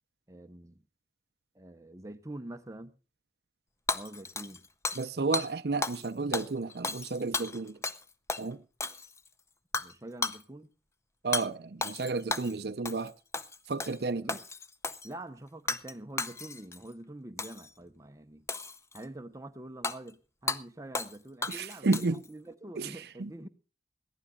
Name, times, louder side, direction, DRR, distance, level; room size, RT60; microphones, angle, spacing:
voice 1, 0.3-0.8 1.5-3.0 3.9-4.7 9.8-10.7 14.2-14.4 15.0-18.5 18.9-23.5, right 1 dB, 20° right, 0.7 m, -45 dB
Hammer / Shatter, 3.9-5.1 5.3-5.5 5.8-6.1 6.3-8.0 8.3-8.4 8.8-9.3 9.7-9.9 10.2-10.4 11.3-11.5 11.8-12.5 12.9-13.1 13.3-14.0 14.3-15.1 15.7-15.9 16.2-16.8 17.4-17.7 18.5-19.0 19.8-20.0 20.5-20.6 20.9-21.2 21.4-22.3, left 3 dB, 15° left, 0.6 m, -34 dB
voice 2, 5.0-7.8 8.4-8.6 11.2-13.1 13.7-14.4 21.5-22.2 22.8-22.9 23.2-23.3, right 3 dB, 60° right, 0.6 m, -32 dB
21.5 x 15.0 x 2.3 m
head